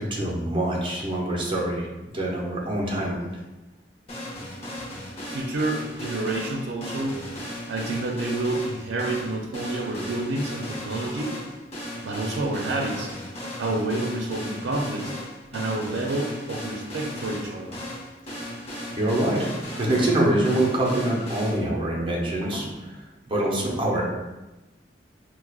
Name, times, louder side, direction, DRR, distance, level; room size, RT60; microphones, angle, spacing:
voice 1, 0.0-1.9 2.1-3.2 4.6-4.7 19.0-19.5 19.8-22.9 23.3-24.0, right 1 dB, 30° right, -2 dB, 0.7 m, -25 dB
sound 1, 4.1-21.5, left 1 dB, 35° left, 0.7 m, -36 dB
voice 2, 5.3-11.3 12.0-13.1 13.4-15.1 15.5-17.7, right 2 dB, 85° right, 0 dB, 0.4 m, -29 dB
4.6 x 2.0 x 2.3 m, 1.1 s
head